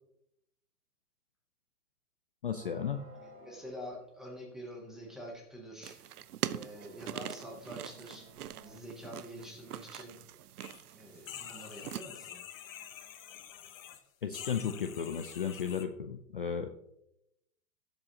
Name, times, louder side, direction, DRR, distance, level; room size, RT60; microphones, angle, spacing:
voice 1, 2.4-3.0 14.2-16.7, left 7 dB, 35° left, 6 dB, 0.4 m, -34 dB
sound 1, 2.5-5.5 6.0-6.1 6.5-8.8, right 3 dB, 40° right, 1.3 m, -57 dB
voice 2, 3.2-10.2 10.9-12.4, equal, ahead, -2 dB, 0.7 m, -47 dB
sound 2, 5.8-12.0, right 11 dB, 65° right, 0.7 m, -43 dB
sound 3, 10.6-10.8 11.1-14.0 14.3-15.8, left 10 dB, 55° left, 1.2 m, -47 dB
16.0 x 7.8 x 2.8 m, 0.80 s
hypercardioid pair, 160°, 49 cm